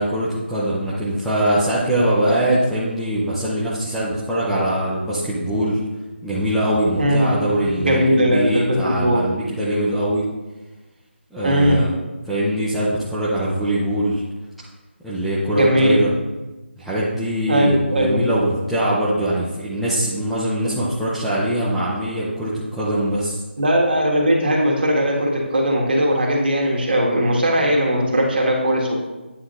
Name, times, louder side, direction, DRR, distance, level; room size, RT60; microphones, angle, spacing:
voice 1, 0.0-5.8 6.2-10.2 11.3-11.9 12.2-14.2 15.0-16.1 16.8-23.4, right 1 dB, ahead, -12 dB, 0.5 m, -22 dB
voice 2, 7.0-7.3 7.8-9.2 11.4-11.8 15.5-16.0 17.5-18.2 23.6-29.1, equal, 50° right, -2 dB, 1.8 m, -19 dB
9.5 x 5.8 x 2.5 m, 1.1 s
figure-of-eight pair, 165°, 7 cm